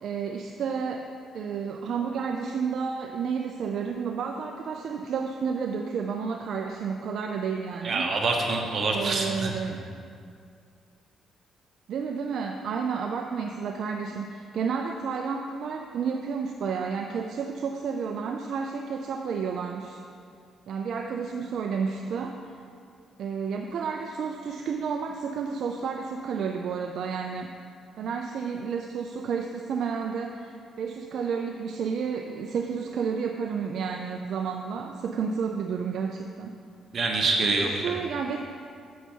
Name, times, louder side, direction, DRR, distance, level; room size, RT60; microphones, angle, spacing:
voice 1, 0.0-8.1 8.9-9.9 11.9-20.0 20.7-22.6 23.2-27.5 28.0-36.6 37.4-38.4, right 6 dB, 65° right, 3 dB, 0.4 m, -31 dB
voice 2, 7.8-9.5 9.9-10.0 36.9-38.0, right 3 dB, 50° right, 1 dB, 1.2 m, -26 dB
7.3 x 6.7 x 4.5 m, 2.3 s
cardioid pair, 90°, 0 cm